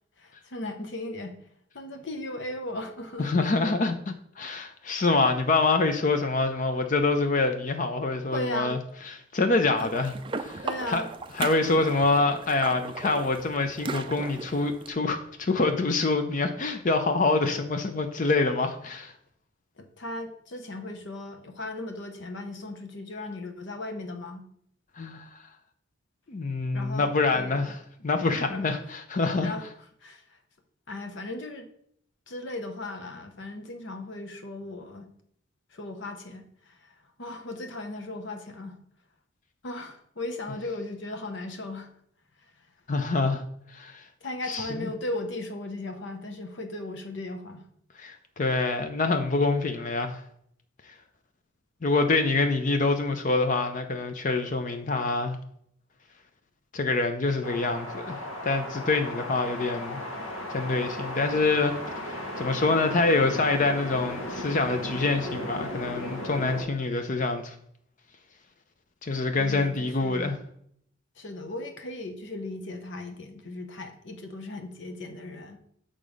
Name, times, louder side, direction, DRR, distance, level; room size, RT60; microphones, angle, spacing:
voice 1, 0.2-1.4 1.7-3.5 8.3-8.8 9.8-9.9 10.6-11.1 19.8-24.4 26.7-27.6 28.5-28.6 29.4-29.7 30.0-30.4 30.9-31.7 32.3-35.1 35.7-38.8 39.6-41.9 42.4-42.5 44.2-47.6 69.3-70.3 71.2-75.6, left 2 dB, 60° left, 0.8 m, -37 dB
voice 2, 3.2-8.8 9.3-10.1 10.4-11.0 11.4-19.1 25.0-25.2 26.3-27.8 28.0-29.5 42.9-43.4 43.7-44.0 44.5-44.9 48.0-50.2 51.8-55.4 56.7-60.0 60.5-61.7 62.0-67.5 69.0-70.4, left 3 dB, 40° left, 0.5 m, -26 dB
sound 1, 9.8-14.9, right 4 dB, 25° right, 0.4 m, -37 dB
sound 2, 57.4-66.6, left 1 dB, 85° left, 1.4 m, -36 dB
6.7 x 3.7 x 5.2 m
head